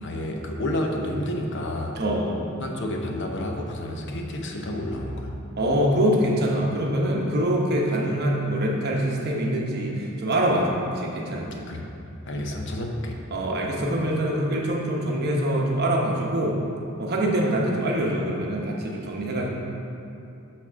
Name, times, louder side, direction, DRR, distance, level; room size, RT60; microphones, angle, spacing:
voice 1, 0.0-2.0 2.6-5.3 11.7-11.8 12.3-13.2, left 1 dB, 60° left, 1 dB, 0.8 m, -30 dB
voice 2, 2.0-2.5 3.9-4.0 5.6-11.7 13.3-16.6 17.0-19.5, right 1 dB, 50° right, -1 dB, 1.0 m, -24 dB
6.0 x 4.3 x 6.1 m, 2.7 s
head